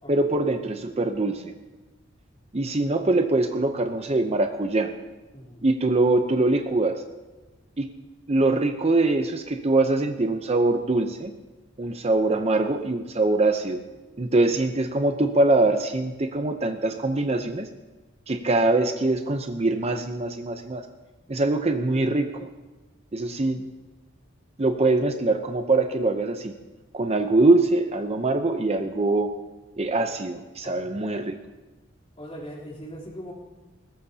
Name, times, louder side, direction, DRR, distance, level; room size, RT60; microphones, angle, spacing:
voice 1, 0.1-1.5 2.5-4.9 5.6-7.0 7.8-7.9 8.3-11.3 11.8-13.8 14.2-17.7 18.3-20.9 21.3-22.5 23.1-23.6 24.6-26.5 26.9-29.3 29.8-31.3, right 2 dB, 30° right, 6 dB, 0.7 m, -23 dB
voice 2, 5.3-5.6 30.6-31.0 32.2-33.3, equal, 30° left, -4 dB, 3.5 m, -40 dB
21.0 x 18.5 x 2.8 m, 1.2 s
head